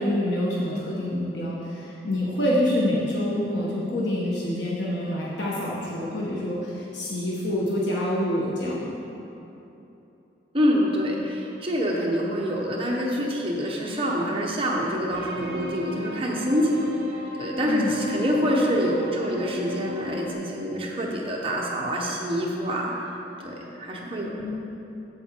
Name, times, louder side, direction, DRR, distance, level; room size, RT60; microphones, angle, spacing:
voice 1, 0.0-8.9 17.6-18.0 24.4-24.7, left 1 dB, 75° left, -5 dB, 1.2 m, -27 dB
voice 2, 10.5-16.9 17.1-22.9 23.4-24.3, equal, 30° right, -2 dB, 1.0 m, -26 dB
sound 1, 15.1-20.3, left 1 dB, 60° right, 1.1 m, -36 dB
7.8 x 7.7 x 4.5 m, 3.0 s
head